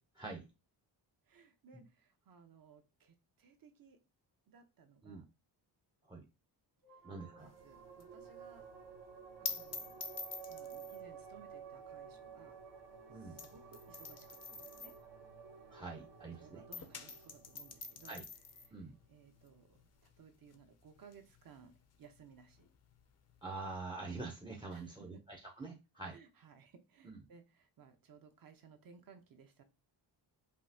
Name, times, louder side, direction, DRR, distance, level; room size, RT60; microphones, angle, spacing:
voice 1, 0.1-0.5 1.7-1.8 5.0-5.2 6.1-6.3 7.0-7.5 13.1-13.4 15.7-16.6 18.1-18.2 18.7-18.9 23.4-26.2 27.0-27.2, right 3 dB, 10° right, 3 dB, 0.5 m, -45 dB
voice 2, 1.3-4.0 4.5-5.2 7.3-8.7 9.4-10.0 10.4-12.6 13.1-14.9 15.9-16.0 16.4-18.2 18.6-21.7 22.0-22.7 24.7-25.2 26.1-29.6, right 6 dB, 50° right, 7 dB, 0.8 m, -61 dB
sound 1, 6.8-19.7, right 6 dB, 70° right, 1.1 m, -54 dB
sound 2, 7.4-16.3 16.6-23.8, left 5 dB, 40° left, 0.5 m, -48 dB
5.2 x 2.8 x 2.7 m, 0.28 s
wide cardioid pair, 155°, 43 cm